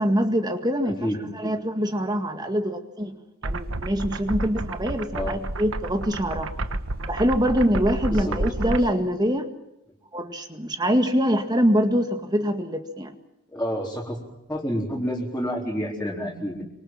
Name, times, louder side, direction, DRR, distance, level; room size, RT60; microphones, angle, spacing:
voice 1, 0.0-1.1 1.3-3.2 3.4-6.5 7.1-9.5 10.1-13.1, equal, 20° right, 6 dB, 1.9 m, -24 dB
voice 2, 1.0-1.5 5.1-5.4 8.1-8.4 13.5-14.2 14.5-16.6, equal, 10° left, -4 dB, 4.2 m, -29 dB
sound 1, 3.4-8.8, right 2 dB, 85° right, 1.4 m, -30 dB
26.0 x 26.0 x 7.5 m, 0.91 s
head